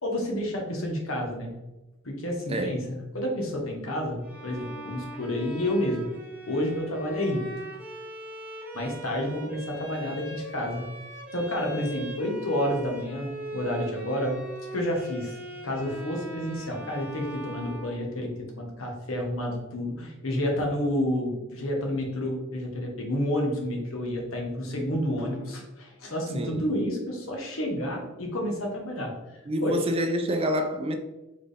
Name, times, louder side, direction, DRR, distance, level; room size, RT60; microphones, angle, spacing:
voice 1, 0.0-1.5 2.0-6.1 6.5-7.4 8.7-10.8 11.3-14.4 14.7-15.4 15.6-18.3 18.6-29.1 29.6-29.8, left 1 dB, 75° left, 1.2 m, -30 dB
Bowed string instrument, 4.2-18.5, right 1 dB, 5° right, 0.9 m, -41 dB
voice 2, 26.3-26.7 29.5-31.0, equal, 30° right, 0.4 m, -27 dB
4.3 x 3.6 x 3.3 m
head